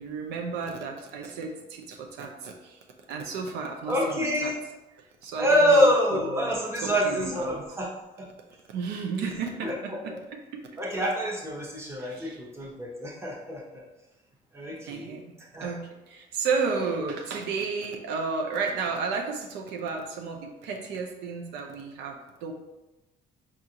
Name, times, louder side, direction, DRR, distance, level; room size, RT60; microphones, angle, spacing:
voice 1, 0.0-2.8 3.1-4.5 5.2-5.9 6.2-7.6 8.7-10.1 10.5-10.6 12.0-12.4 14.9-15.2 15.6-22.5, right 5 dB, 85° right, 2 dB, 0.5 m, -32 dB
voice 2, 3.9-4.6 5.4-7.9 8.2-8.3 9.2-9.3 9.6-10.0 10.8-13.8 14.5-15.2 15.5-15.8, equal, 15° right, -2 dB, 0.9 m, -26 dB
4.8 x 2.4 x 2.8 m, 0.99 s
cardioid pair, 110°, 17 cm